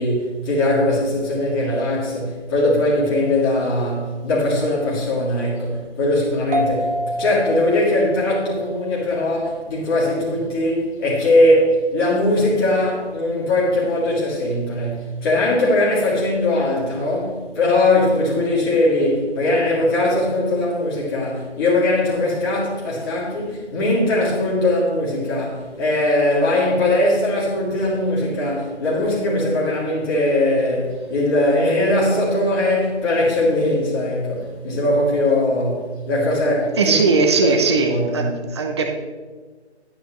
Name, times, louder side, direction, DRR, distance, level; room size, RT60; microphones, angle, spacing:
voice 1, 0.0-38.4, left 1 dB, 20° left, 2.8 m, -20 dB
sound 1, 6.5-9.8, right 1 dB, 55° right, 1.6 m, -28 dB
voice 2, 36.8-38.2 38.5-38.9, right 4 dB, 25° right, 0.6 m, -18 dB
12.0 x 9.7 x 3.1 m
figure-of-eight pair, 155°, 34 cm